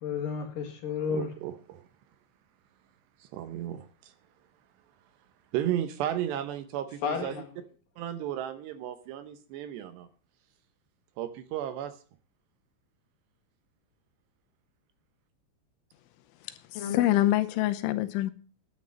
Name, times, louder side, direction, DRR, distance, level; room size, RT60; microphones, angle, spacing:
voice 1, 0.0-1.3 7.0-7.6 16.7-17.1, left 6 dB, 60° left, 2.8 m, -32 dB
voice 2, 1.1-1.8 3.2-4.1 5.5-7.4 8.0-10.1 11.2-12.0, right 11 dB, 75° right, 2.8 m, -34 dB
voice 3, 16.7-18.3, left 14 dB, 80° left, 3.2 m, -25 dB
10.5 x 9.7 x 7.5 m
omnidirectional pair, 5.5 m